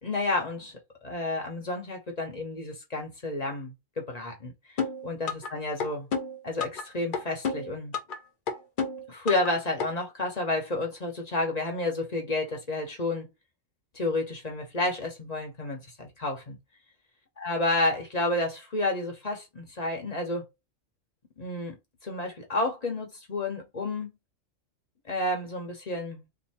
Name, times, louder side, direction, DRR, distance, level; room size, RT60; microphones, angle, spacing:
voice 1, 0.0-0.7 1.0-4.5 5.0-6.1 6.4-7.9 9.1-13.3 13.9-16.6 17.4-20.4 21.4-21.7 22.0-24.1 25.1-26.3, left 2 dB, 35° left, 1.1 m, -30 dB
sound 1, 4.8-5.5 5.8-6.8 7.1-8.2 8.5-9.5 9.8-9.9, left 5 dB, 50° left, 0.7 m, -30 dB
2.7 x 2.7 x 4.2 m
omnidirectional pair, 1.3 m